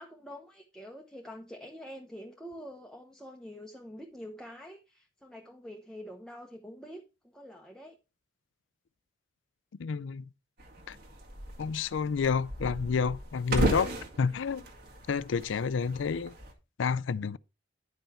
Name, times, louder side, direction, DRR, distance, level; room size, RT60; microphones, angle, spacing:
voice 1, 0.0-8.0, equal, 5° left, 0.9 m, -46 dB
voice 2, 9.8-10.2 10.9-11.0 11.6-13.9 14.2-14.6 15.1-16.3 16.8-17.4, left 5 dB, 85° left, 0.4 m, -29 dB
sound 1, 10.6-16.5, right 1 dB, 55° right, 1.9 m, -35 dB
10.5 x 5.6 x 4.3 m
head